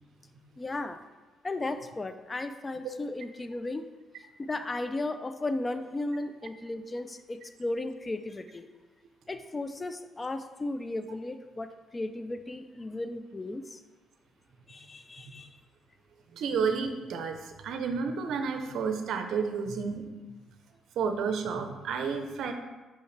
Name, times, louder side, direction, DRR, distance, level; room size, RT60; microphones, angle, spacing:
voice 1, 0.6-1.0 1.4-3.9 4.4-8.7 9.3-13.8 14.7-15.6, left 2 dB, 25° left, 9 dB, 0.4 m, -35 dB
voice 2, 16.3-20.1 21.0-22.5, right 5 dB, 75° right, 6 dB, 0.6 m, -31 dB
5.6 x 5.5 x 3.3 m, 1.2 s
cardioid pair, 90°, 0 cm